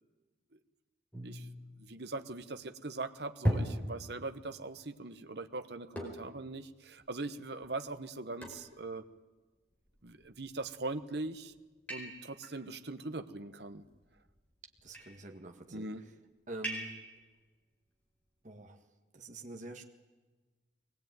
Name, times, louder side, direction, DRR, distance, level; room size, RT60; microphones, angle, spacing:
sound 1, 1.1-2.6 3.4-4.4 6.0-6.5 7.0-7.1 7.6-7.7 8.4-8.8 9.9-10.3 11.0-11.3 11.9-12.6 13.7-14.3 14.8-15.2 16.6-17.2, equal, 10° left, 4.8 m, -38 dB
voice 1, 1.8-9.0 10.0-11.5 11.9-13.8 15.7-16.1, right 2 dB, 60° right, 8 dB, 1.1 m, -41 dB
voice 2, 14.8-15.9 16.5-16.9 18.4-18.8 19.1-19.8, right 2 dB, 40° right, 2 dB, 1.8 m, -46 dB
22.5 x 19.5 x 9.3 m, 1.3 s
head